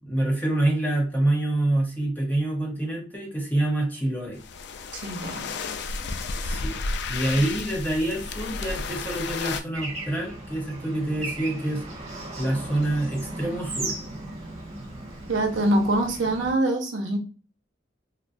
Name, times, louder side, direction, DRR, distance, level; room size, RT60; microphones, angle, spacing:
voice 1, 0.0-4.4 6.4-6.8 7.1-11.8 12.4-14.0, right 1 dB, 10° left, -2 dB, 1.0 m, -26 dB
sound 1, 4.4-9.6, left 4 dB, 65° left, 0.4 m, -32 dB
voice 2, 4.9-5.5 15.3-17.2, right 1 dB, 90° right, 2 dB, 0.8 m, -24 dB
Bird / Traffic noise roadway noise, 9.7-16.5, right 2 dB, 35° right, 1.4 m, -36 dB
4.1 x 2.0 x 2.5 m, 0.36 s
head